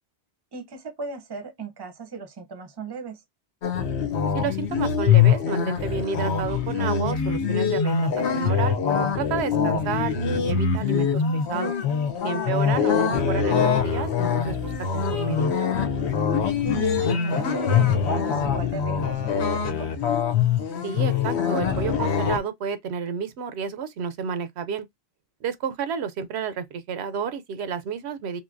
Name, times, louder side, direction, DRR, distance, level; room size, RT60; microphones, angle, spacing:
voice 1, 0.5-3.2 9.6-9.9 12.6-13.0 16.5-19.9, right 4 dB, 25° right, 0.6 m, -38 dB
sound 1, 3.6-22.4, left 7 dB, 85° left, 1.0 m, -23 dB
voice 2, 4.3-8.8 9.2-11.7 12.2-15.5 20.8-24.8 25.4-28.4, right 6 dB, 80° right, 0.9 m, -30 dB
3.7 x 2.8 x 2.5 m
omnidirectional pair, 1.1 m